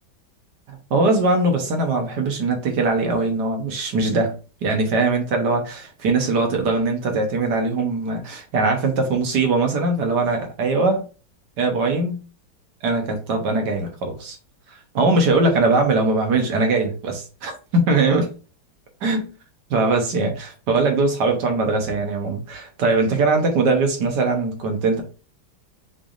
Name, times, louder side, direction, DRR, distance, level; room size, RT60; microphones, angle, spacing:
voice 1, 0.7-4.3 4.6-11.0 11.6-12.2 12.8-14.4 14.9-18.3 19.0-19.3 19.7-25.0, right 3 dB, 65° right, 1.6 m, -21 dB
6.0 x 3.5 x 2.5 m
omnidirectional pair, 2.0 m